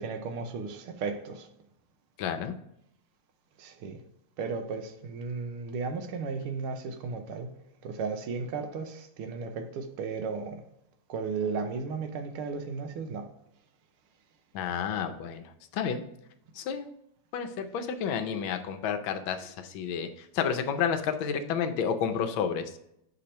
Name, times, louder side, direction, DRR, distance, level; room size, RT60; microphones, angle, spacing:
voice 1, 0.0-1.5 3.6-4.0 4.4-7.5 7.8-10.6 11.1-13.3, right 5 dB, 85° right, 1.6 m, -35 dB
voice 2, 2.2-2.5 14.5-16.0 16.5-16.9 17.3-22.7, left 7 dB, 75° left, 1.3 m, -31 dB
6.6 x 2.9 x 5.1 m
omnidirectional pair, 2.4 m